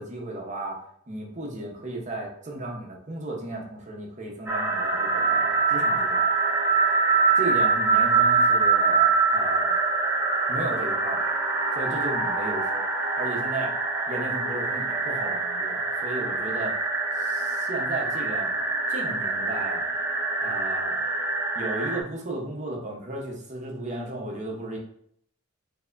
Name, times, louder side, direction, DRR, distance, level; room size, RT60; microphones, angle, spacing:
voice 1, 0.0-6.2 7.3-9.7 10.5-11.3 11.7-12.9 13.2-13.8 14.1-16.8 17.1-18.5 18.9-19.9 20.4-21.0 21.6-24.8, right 2 dB, 35° right, -1 dB, 0.8 m, -34 dB
sound 1, 4.5-22.0, right 4 dB, 10° right, 0.4 m, -24 dB
4.5 x 2.8 x 2.5 m, 0.67 s
head